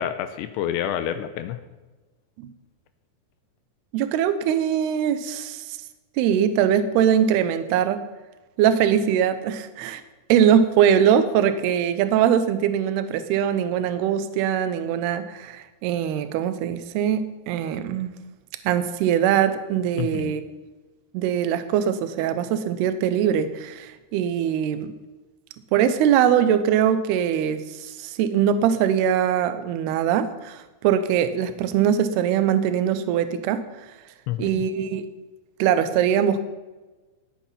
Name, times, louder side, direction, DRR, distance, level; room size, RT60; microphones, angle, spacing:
voice 1, 0.0-1.6 20.0-20.4 34.3-34.7, left 10 dB, 80° left, 10 dB, 2.9 m, -28 dB
voice 2, 3.9-5.8 6.2-8.0 8.6-10.0 10.3-18.1 18.6-20.4 21.1-25.0 25.7-33.6 34.4-35.1 35.6-36.4, right 9 dB, 75° right, 11 dB, 2.8 m, -22 dB
19.5 x 8.8 x 5.8 m, 1.2 s
omnidirectional pair, 5.1 m